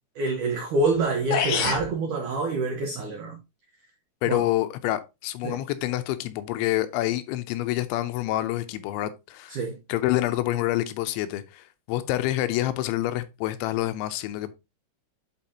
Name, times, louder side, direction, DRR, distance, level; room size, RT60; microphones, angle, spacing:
voice 1, 0.2-3.4 4.3-4.4 5.4-5.6 9.5-9.8, right 3 dB, 80° right, 1.7 m, -26 dB
sound 1, 0.9-1.0 1.3-1.9, left 7 dB, 65° left, 2.4 m, -25 dB
voice 2, 4.2-9.6 9.9-14.5, left 15 dB, 85° left, 3.0 m, -27 dB
10.5 x 4.7 x 2.8 m
omnidirectional pair, 5.5 m